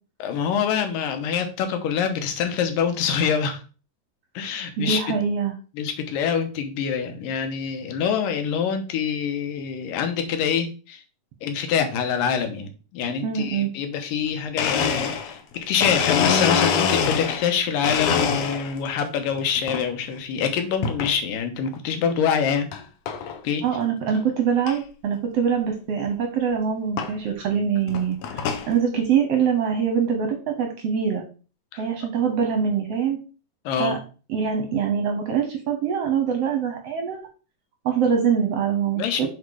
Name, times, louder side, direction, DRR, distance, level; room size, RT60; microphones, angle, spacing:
voice 1, 0.2-3.6 4.3-5.0 5.7-11.0 11.4-22.7 23.4-23.6 31.7-31.8 33.6-34.0 39.0-39.3, left 7 dB, 85° left, 6 dB, 2.7 m, -25 dB
voice 2, 4.8-5.5 13.2-13.7 23.6-31.2 31.8-33.2 33.8-34.0 34.3-37.2 37.8-39.3, right 7 dB, 65° right, 4 dB, 1.6 m, -24 dB
Domestic sounds home sounds, 14.2-14.3 14.6-17.5 17.8-18.9 19.3-19.8 20.8-21.1 21.7-21.8 22.7-22.8 23.1-23.4 23.8-23.9 24.1-24.2 24.7-24.8 26.1-26.2 27.0-27.1 27.8-28.7, left 6 dB, 70° left, 1.7 m, -24 dB
7.3 x 4.2 x 4.8 m, 0.36 s
omnidirectional pair, 3.8 m